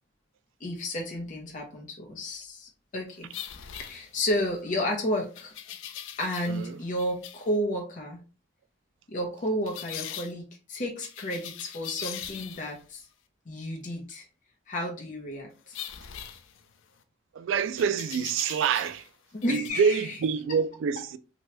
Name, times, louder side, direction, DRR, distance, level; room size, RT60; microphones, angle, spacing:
voice 1, 0.6-3.3 3.8-5.5 6.2-8.2 9.1-13.1 13.5-14.3 14.7-15.8 19.3-20.2, equal, 40° left, 0.7 m, -32 dB
sound 1, 3.3-4.5 5.3-6.7 7.0-7.5 9.7-10.3 11.0-12.8 15.7-17.0 17.8-19.1 19.4-19.7, left 10 dB, 80° left, 0.4 m, -41 dB
voice 2, 17.4-19.0 19.5-21.2, right 6 dB, 80° right, 0.3 m, -26 dB
2.9 x 2.2 x 2.9 m
head